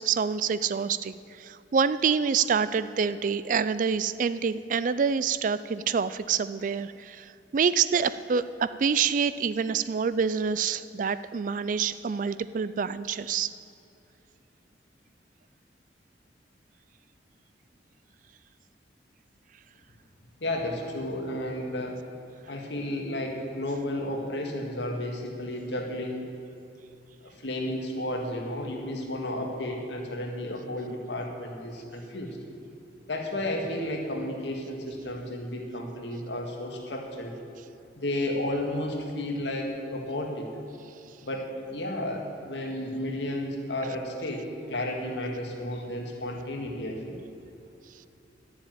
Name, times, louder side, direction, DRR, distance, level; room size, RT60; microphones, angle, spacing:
voice 1, 0.0-13.5, right 6 dB, 45° right, 15 dB, 0.3 m, -27 dB
voice 2, 20.4-22.0 22.5-26.2 27.2-32.4 33.1-37.4 37.9-40.5 41.2-47.2, left 1 dB, 70° left, 1 dB, 2.0 m, -32 dB
11.5 x 7.3 x 9.2 m, 2.7 s
head